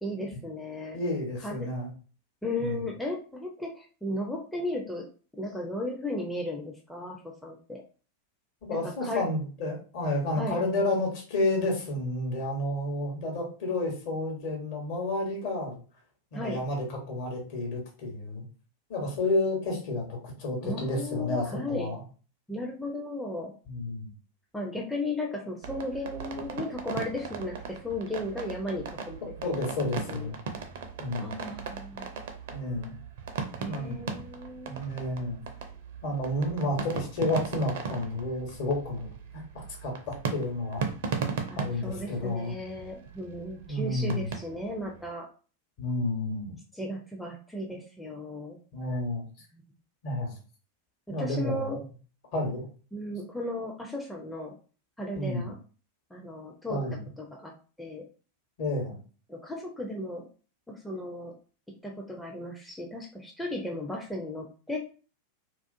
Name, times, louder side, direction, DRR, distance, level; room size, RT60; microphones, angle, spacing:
voice 1, 0.0-1.0 1.4-1.7 2.4-5.0 5.4-7.2 7.4-7.8 8.7-9.2 10.4-10.7 16.3-16.6 20.6-21.9 22.5-23.5 24.5-29.5 30.1-30.3 31.2-32.1 33.6-34.8 41.5-45.3 46.7-48.6 49.5-49.6 51.2-51.8 52.9-54.5 55.0-55.6 56.1-56.8 57.2-57.5 57.8-58.0 59.3-60.3 60.7-61.3 61.8-64.8, left 1 dB, 5° left, -2 dB, 0.4 m, -35 dB
voice 2, 0.9-1.9 2.6-2.9 8.6-15.8 16.3-18.4 18.9-22.0 23.7-24.1 29.4-30.4 31.0-31.3 32.5-32.9 33.6-34.0 34.7-35.4 36.0-39.1 39.3-40.9 41.5-42.5 43.7-44.3 45.8-46.5 48.7-49.2 50.0-50.3 51.1-51.8 52.3-52.7 55.1-55.5 56.7-57.1 58.6-59.0, left 2 dB, 50° left, 0 dB, 1.0 m, -31 dB
sound 1, 25.6-45.1, right 5 dB, 55° right, 0.4 m, -38 dB
2.3 x 2.3 x 2.6 m, 0.38 s
figure-of-eight pair, 90°, 0 cm